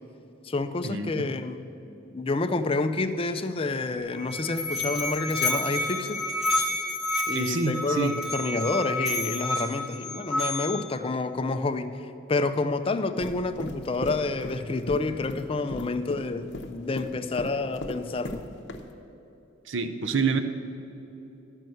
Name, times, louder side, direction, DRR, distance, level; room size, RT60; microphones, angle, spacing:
voice 1, 0.4-1.6 2.1-6.2 7.3-18.4, left 3 dB, 25° left, 9 dB, 0.4 m, -29 dB
Musical instrument, 4.0-11.0, left 2 dB, ahead, 1.2 m, -30 dB
voice 2, 7.3-8.2 19.7-20.4, right 4 dB, 65° right, 9 dB, 0.6 m, -27 dB
sound 1, 13.2-18.4 18.7-18.8, left 1 dB, 60° left, 0.8 m, -37 dB
12.5 x 5.5 x 7.7 m, 3.0 s
head